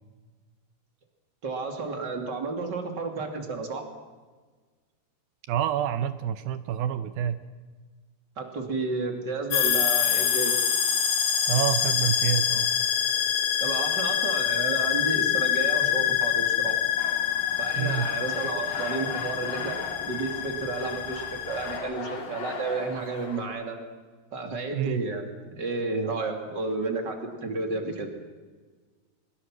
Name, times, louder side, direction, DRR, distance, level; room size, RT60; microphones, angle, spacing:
voice 1, 1.4-3.8 8.4-10.6 13.6-16.8 17.6-23.8 24.3-28.1, right 3 dB, 30° right, 4 dB, 2.6 m, -32 dB
voice 2, 5.5-7.4 11.5-12.7 17.8-18.1 24.7-25.0, right 9 dB, 75° right, 12 dB, 2.4 m, -27 dB
sound 1, 9.5-21.8, left 9 dB, 70° left, 3.8 m, -26 dB
sound 2, 17.0-23.4, left 4 dB, 45° left, 3.6 m, -39 dB
25.0 x 21.0 x 6.2 m, 1.4 s
omnidirectional pair, 4.8 m